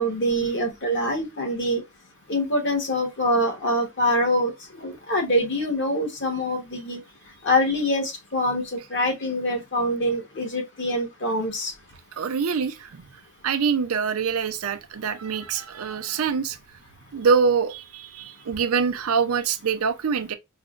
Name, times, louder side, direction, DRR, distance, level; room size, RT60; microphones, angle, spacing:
voice 1, 0.0-1.8 2.3-7.0 7.4-8.6 8.9-11.7, equal, 60° left, 1.1 m, -24 dB
voice 2, 12.2-13.0 13.4-16.6 17.1-20.3, right 6 dB, 90° right, 0.5 m, -24 dB
4.7 x 2.1 x 2.4 m
head